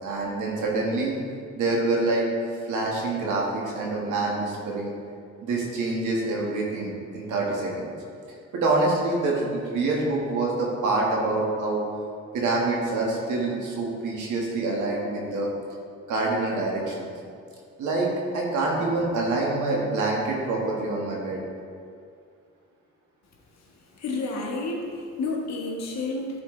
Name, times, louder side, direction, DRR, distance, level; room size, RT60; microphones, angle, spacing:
voice 1, 0.0-1.1 1.5-2.2 2.7-4.9 5.4-7.9 8.5-11.8 12.3-15.5 16.1-17.1 17.8-18.1 18.3-21.4, right 2 dB, 85° right, -2 dB, 1.7 m, -26 dB
voice 2, 24.0-26.4, left 3 dB, 65° left, -1 dB, 1.5 m, -30 dB
11.5 x 4.4 x 3.2 m, 2.3 s
cardioid pair, 90°, 30 cm